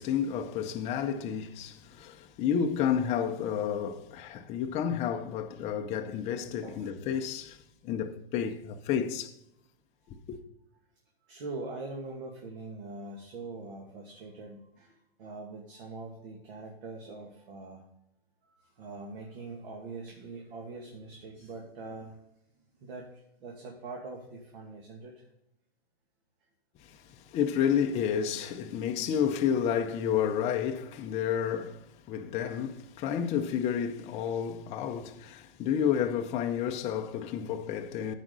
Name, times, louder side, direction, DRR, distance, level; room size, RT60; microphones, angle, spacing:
voice 1, 0.0-7.6 7.8-9.3 10.1-10.4 27.3-38.1, left 8 dB, 20° left, 0.7 m, -30 dB
voice 2, 6.6-6.9 11.2-17.8 18.4-22.3 22.5-25.3 26.9-27.1, right 3 dB, 60° right, 2.4 m, -43 dB
14.5 x 5.2 x 4.0 m
hypercardioid pair, 140°, 31 cm